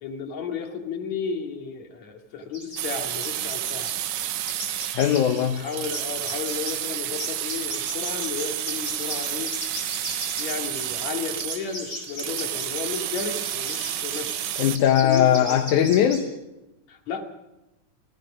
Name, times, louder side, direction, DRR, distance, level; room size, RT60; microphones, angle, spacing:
voice 1, 0.0-3.9 5.6-9.5 10.1-14.4 15.0-15.6 16.9-17.2, left 5 dB, 65° left, 3 dB, 3.6 m, -33 dB
sound 1, 2.5-3.0 3.2-16.2, equal, 20° right, 6.7 m, -37 dB
sound 2, 2.8-14.8, right 12 dB, 75° right, 2.3 m, -31 dB
voice 2, 4.9-5.6 14.6-16.3, left 10 dB, 80° left, 5 dB, 2.6 m, -20 dB
29.5 x 18.0 x 6.3 m, 0.99 s
omnidirectional pair, 3.4 m